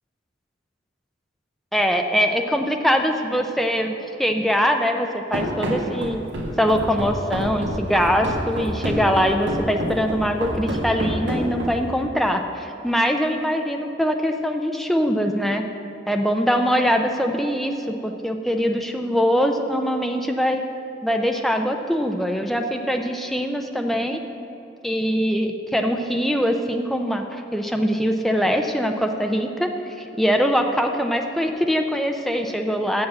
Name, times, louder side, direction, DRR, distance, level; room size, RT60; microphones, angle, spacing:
voice 1, 1.7-6.2 6.6-15.6 16.1-20.6 21.0-24.2 24.8-29.7 30.0-33.1, equal, ahead, 4 dB, 0.5 m, -22 dB
Run, 5.3-12.0, right 1 dB, 65° right, 1.5 m, -27 dB
7.3 x 7.2 x 7.4 m, 2.9 s
head